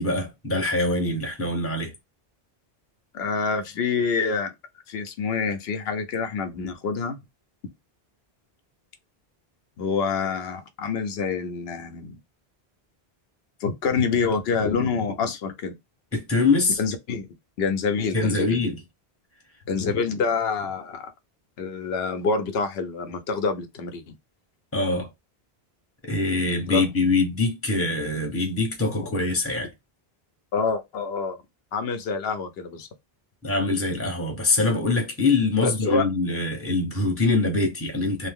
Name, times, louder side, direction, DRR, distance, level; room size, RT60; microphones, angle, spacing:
voice 1, 0.0-1.9 16.1-16.8 18.1-18.8 24.7-25.1 26.0-29.7 33.4-38.3, left 3 dB, 15° left, 0.7 m, -24 dB
voice 2, 3.1-4.5 4.9-7.2 9.8-12.2 13.6-15.8 16.8-17.3 17.6-18.6 19.7-21.1 21.6-24.0 26.6-26.9 28.8-29.1 30.5-31.4 31.7-32.9 35.6-36.1, left 5 dB, 80° left, 0.8 m, -27 dB
2.5 x 2.0 x 3.4 m
omnidirectional pair, 1.0 m